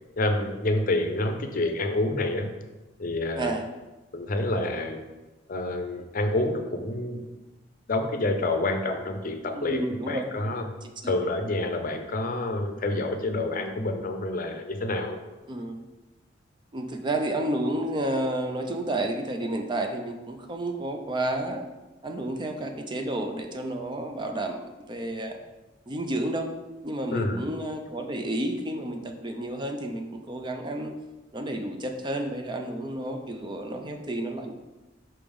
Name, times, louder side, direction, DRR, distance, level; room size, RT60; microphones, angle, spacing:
voice 1, 0.2-2.5 3.0-3.6 4.1-5.0 5.5-7.3 7.9-10.7 11.0-15.2 27.1-27.5, left 2 dB, 50° left, 6 dB, 0.6 m, -28 dB
voice 2, 9.6-10.3 11.0-11.1 15.5-15.8 16.7-21.6 22.0-25.4 25.9-26.5 26.8-30.9 31.3-34.5, right 1 dB, 25° right, 5 dB, 0.5 m, -31 dB
5.8 x 3.4 x 5.3 m, 1.1 s
head